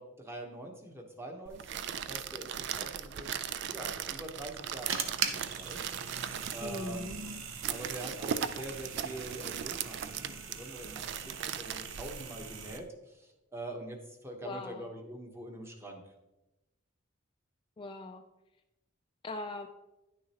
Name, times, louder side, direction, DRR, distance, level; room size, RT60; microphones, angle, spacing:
voice 1, 0.0-3.3 3.7-5.8 6.5-7.0 7.7-16.0, right 1 dB, 15° right, 2 dB, 1.0 m, -44 dB
sound 1, 1.5-12.8, right 8 dB, 60° right, 0.4 m, -39 dB
sound 2, 4.4-12.8, right 6 dB, 85° right, 0.8 m, -41 dB
voice 2, 6.6-7.2 14.4-14.9 17.8-18.2 19.2-19.7, left 2 dB, 25° left, 5 dB, 0.3 m, -40 dB
10.0 x 6.5 x 2.9 m, 0.99 s
head